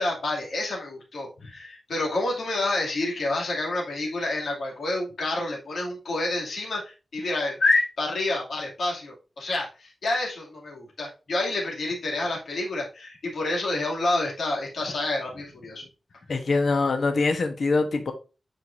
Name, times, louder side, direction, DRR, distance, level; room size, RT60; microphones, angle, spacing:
voice 1, 0.0-15.9, left 2 dB, 90° left, -2 dB, 2.4 m, -28 dB
voice 2, 16.3-18.1, left 3 dB, 60° left, 7 dB, 1.1 m, -23 dB
9.0 x 4.8 x 2.6 m, 0.31 s
wide cardioid pair, 155°, 0 cm